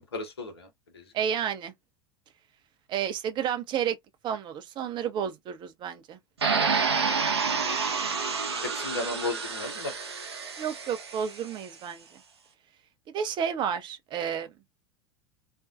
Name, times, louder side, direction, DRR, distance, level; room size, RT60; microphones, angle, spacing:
voice 1, 0.1-0.7 0.9-1.0 7.4-7.7 8.6-9.9, left 2 dB, 75° left, 0.9 m, -34 dB
voice 2, 1.1-1.7 2.9-4.0 4.2-6.2 10.6-12.1 13.1-14.5, right 8 dB, 35° right, 0.6 m, -31 dB
sound 1, 6.4-11.4, right 5 dB, 80° right, 0.6 m, -29 dB
2.5 x 2.2 x 2.5 m
figure-of-eight pair, 80°, 14 cm